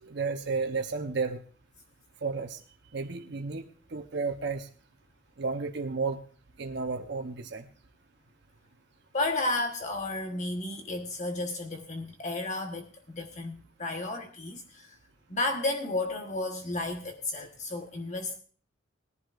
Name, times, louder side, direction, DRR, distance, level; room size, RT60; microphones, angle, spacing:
voice 1, 0.0-1.4 2.2-2.6 2.9-3.6 3.9-4.7 5.4-6.2 6.6-7.7, right 4 dB, 60° right, 5 dB, 0.9 m, -32 dB
voice 2, 9.1-15.0 15.3-18.4, left 2 dB, 40° left, 3 dB, 1.2 m, -33 dB
20.0 x 11.0 x 2.5 m, 0.43 s
head